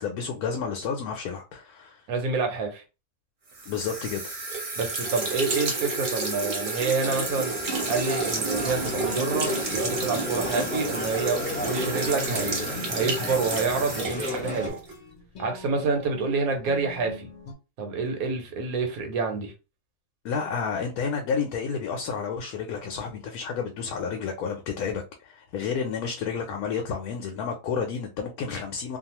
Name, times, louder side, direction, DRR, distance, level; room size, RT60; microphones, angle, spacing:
voice 1, 0.0-2.0 3.7-4.2 20.2-29.0, left 6 dB, 90° left, 1.1 m, -30 dB
voice 2, 2.1-2.8 4.8-7.6 7.9-14.8 15.4-17.3 17.8-19.5, right 4 dB, 80° right, 1.2 m, -28 dB
sound 1, 3.5-15.0, right 3 dB, 45° right, 0.9 m, -31 dB
sound 2, 7.0-14.7, left 1 dB, 10° left, 0.4 m, -34 dB
sound 3, 8.4-17.5, left 2 dB, 55° left, 0.9 m, -42 dB
2.6 x 2.3 x 2.8 m
omnidirectional pair, 1.5 m